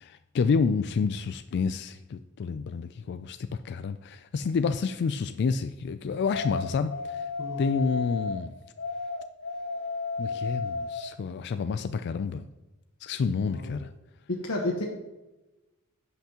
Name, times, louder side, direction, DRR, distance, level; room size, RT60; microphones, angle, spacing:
voice 1, 0.0-7.2 7.6-8.5 10.2-12.5 13.0-13.9, left 5 dB, 50° left, 10 dB, 0.3 m, -29 dB
sound 1, 6.3-8.4 8.8-11.1, left 4 dB, 70° left, 2.0 m, -33 dB
voice 2, 14.3-14.8, left 2 dB, 85° left, -1 dB, 1.1 m, -31 dB
15.5 x 5.9 x 2.9 m, 1.1 s
head